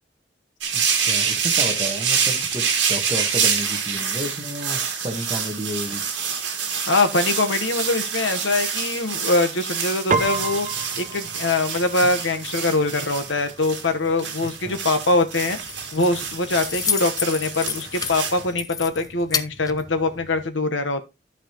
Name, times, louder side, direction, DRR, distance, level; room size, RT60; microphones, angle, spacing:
sound 1, 0.6-18.5, right 6 dB, 65° right, 1.8 m, -26 dB
voice 1, 0.7-6.0 14.6-14.8, equal, 25° right, 1.4 m, -31 dB
voice 2, 6.9-10.7 11.0-15.6 15.9-21.0, left 2 dB, 85° left, 1.1 m, -23 dB
Piano, 10.1-19.7, right 4 dB, 45° right, 0.7 m, -34 dB
Keys jangling, 15.4-20.5, left 6 dB, 20° left, 0.4 m, -31 dB
14.0 x 4.8 x 3.0 m
head